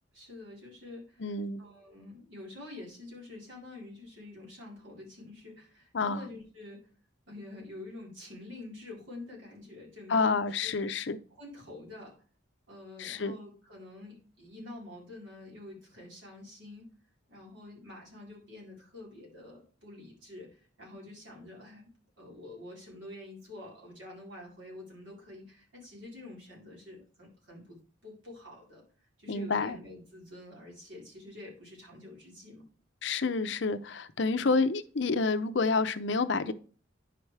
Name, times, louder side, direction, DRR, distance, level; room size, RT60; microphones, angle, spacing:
voice 1, 0.1-6.8 7.3-10.7 11.3-12.1 12.7-16.9 17.3-21.9 22.2-27.8 28.0-28.8 29.2-32.6 34.4-34.6, left 2 dB, 75° right, 4.3 m, -47 dB
voice 2, 1.2-1.6 5.9-6.3 10.1-11.2 13.0-13.4 29.3-29.8 33.0-36.5, left 4 dB, 65° left, 0.6 m, -29 dB
9.8 x 5.9 x 3.3 m
head